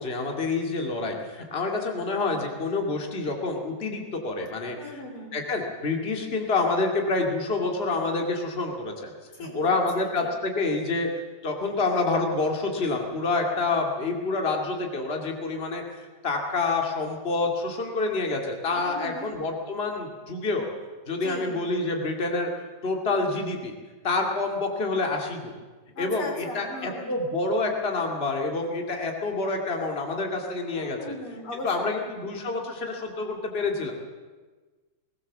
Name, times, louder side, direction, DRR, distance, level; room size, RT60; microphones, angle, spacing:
voice 1, 0.0-5.0 5.3-9.1 9.5-15.8 16.2-20.7 21.1-22.5 22.8-23.7 24.0-25.5 26.0-31.0 31.6-33.9, left 3 dB, 30° left, 2 dB, 2.5 m, -27 dB
voice 2, 4.8-5.4 9.4-9.8 10.2-10.3 18.7-19.3 21.2-21.5 25.9-27.1 30.7-31.9, left 2 dB, 90° left, 2 dB, 4.5 m, -38 dB
20.0 x 18.0 x 7.3 m, 1.3 s
omnidirectional pair, 2.3 m